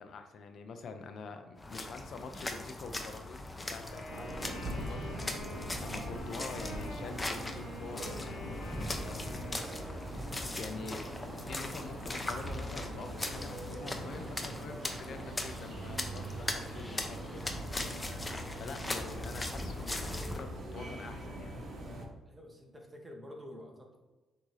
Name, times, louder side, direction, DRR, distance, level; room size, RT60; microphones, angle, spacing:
voice 1, 0.0-9.4 9.7-10.2 10.6-17.4 18.6-21.5, left 4 dB, 60° left, 7 dB, 0.4 m, -46 dB
sound 1, 1.6-20.4, left 2 dB, 20° left, 0.6 m, -40 dB
Wind instrument woodwind instrument, 3.8-10.1, left 2 dB, 85° left, 1.2 m, -48 dB
sound 2, 4.1-22.1, right 1 dB, 65° right, 0.9 m, -42 dB
voice 2, 22.3-24.0, left 1 dB, 15° right, 2 dB, 1.0 m, -49 dB
6.0 x 2.7 x 3.1 m, 1.2 s
cardioid pair, 90°, 0 cm